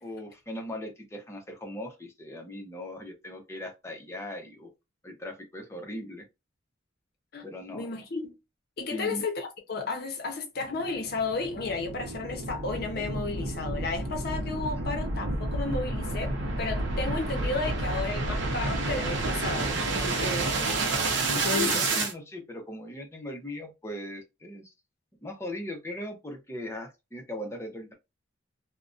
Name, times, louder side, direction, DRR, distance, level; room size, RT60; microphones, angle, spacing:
voice 1, 0.0-4.7 5.0-6.3 7.4-7.9 8.9-9.2 21.2-24.7 25.2-27.9, left 1 dB, 15° left, 0.6 m, -38 dB
voice 2, 7.7-8.3 8.8-20.5 21.4-21.8, left 3 dB, 55° left, 0.6 m, -33 dB
sound 1, 10.6-22.1, right 2 dB, 75° right, 0.6 m, -30 dB
2.5 x 2.1 x 2.4 m
head